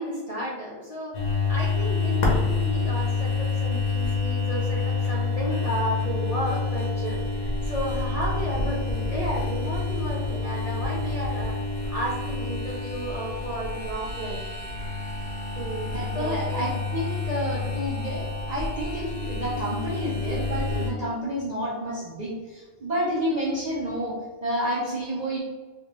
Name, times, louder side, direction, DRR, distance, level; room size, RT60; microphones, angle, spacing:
voice 1, 0.0-11.6 11.9-14.5 15.5-16.7, equal, 35° left, -6 dB, 0.6 m, -33 dB
sound 1, 1.1-20.9, left 4 dB, 75° left, 1.2 m, -28 dB
voice 2, 15.9-24.2 24.4-25.4, equal, 40° right, -5 dB, 0.7 m, -30 dB
4.3 x 2.5 x 2.9 m, 1.3 s
omnidirectional pair, 1.3 m